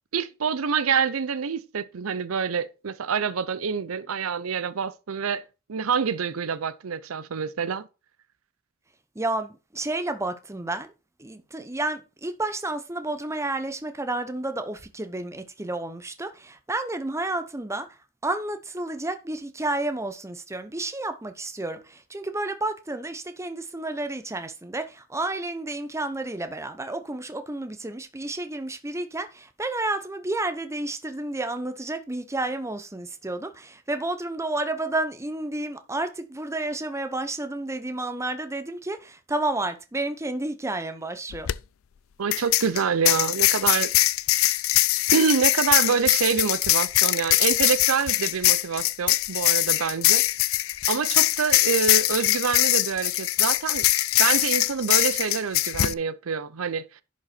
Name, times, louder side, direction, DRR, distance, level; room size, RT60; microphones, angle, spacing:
voice 1, 0.1-5.4 5.7-7.9 42.2-43.9 45.1-50.3 50.9-53.9 54.2-57.0, right 6 dB, 85° right, 0.6 m, -26 dB
voice 2, 9.2-10.9 11.2-17.9 18.2-41.5, right 2 dB, 15° right, 0.8 m, -31 dB
sound 1, 41.3-41.5 42.3-55.9, left 17 dB, 75° left, 0.4 m, -22 dB
11.0 x 5.3 x 4.3 m
head